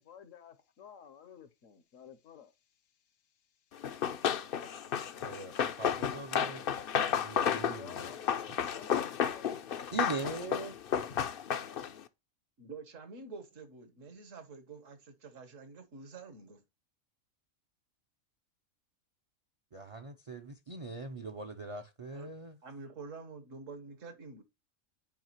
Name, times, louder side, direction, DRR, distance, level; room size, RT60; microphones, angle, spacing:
voice 1, 0.0-2.5 7.7-9.7, left 8 dB, 75° left, 1.3 m, -52 dB
Run, 3.8-12.0, left 8 dB, 55° left, 0.7 m, -32 dB
voice 2, 5.2-6.6 7.1-8.1 9.9-10.8 19.7-22.6, right 4 dB, 40° right, 0.5 m, -41 dB
voice 3, 12.6-16.6 22.1-22.3 22.6-24.4, right 4 dB, 70° right, 1.6 m, -48 dB
9.1 x 4.8 x 2.9 m
omnidirectional pair, 1.4 m